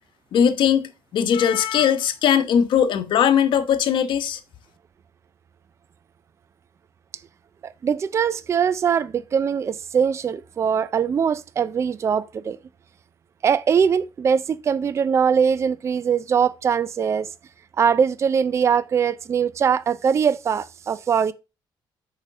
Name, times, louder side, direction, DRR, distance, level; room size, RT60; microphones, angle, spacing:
voice 1, 0.3-4.4, left 8 dB, 65° left, 1.0 m, -20 dB
voice 2, 7.6-12.6 13.4-17.3 17.8-21.3, right 7 dB, 30° right, 0.4 m, -21 dB
6.7 x 5.0 x 4.8 m
cardioid pair, 135°, 9 cm